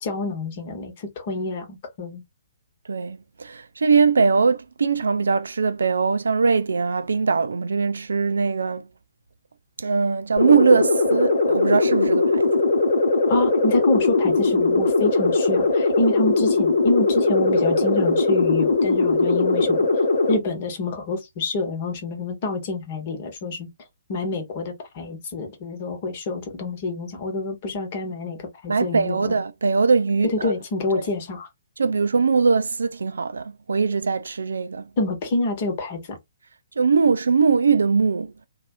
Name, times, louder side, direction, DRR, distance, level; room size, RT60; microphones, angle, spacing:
voice 1, 0.0-2.2 13.3-19.9 20.3-23.7 24.1-29.4 30.2-31.5 35.0-36.0, left 2 dB, 40° left, 1.1 m, -27 dB
voice 2, 2.9-8.9 9.8-12.6 28.7-30.5 31.8-34.9 36.8-38.3, right 5 dB, 70° right, 0.3 m, -21 dB
sound 1, 10.4-20.4, left 3 dB, 65° left, 0.9 m, -20 dB
2.7 x 2.3 x 2.6 m
figure-of-eight pair, 130°, 0 cm